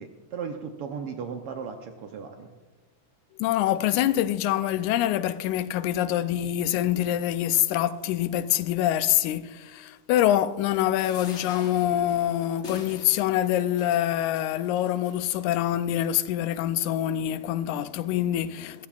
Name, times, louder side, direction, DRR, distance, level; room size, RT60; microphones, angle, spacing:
voice 1, 0.0-2.5, right 6 dB, 70° right, 1.4 m, -36 dB
voice 2, 3.4-18.9, left 12 dB, 90° left, 2.0 m, -25 dB
sound 1, 10.9-15.5 16.1-16.2 16.5-16.6, left 4 dB, 75° left, 0.6 m, -45 dB
23.0 x 14.5 x 2.4 m
omnidirectional pair, 3.4 m